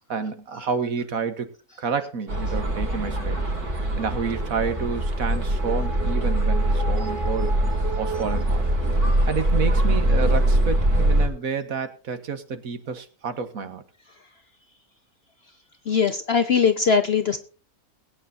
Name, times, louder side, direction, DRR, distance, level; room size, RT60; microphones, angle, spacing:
voice 1, 0.1-1.5 1.8-3.4 4.0-7.5 7.9-8.6 9.3-13.8, right 5 dB, 70° right, 9 dB, 1.8 m, -29 dB
sound 1, 2.3-11.3, right 1 dB, 85° right, 3.9 m, -22 dB
voice 2, 15.9-17.4, left 6 dB, 50° left, 9 dB, 1.0 m, -20 dB
21.5 x 9.4 x 2.8 m, 0.36 s
omnidirectional pair, 1.6 m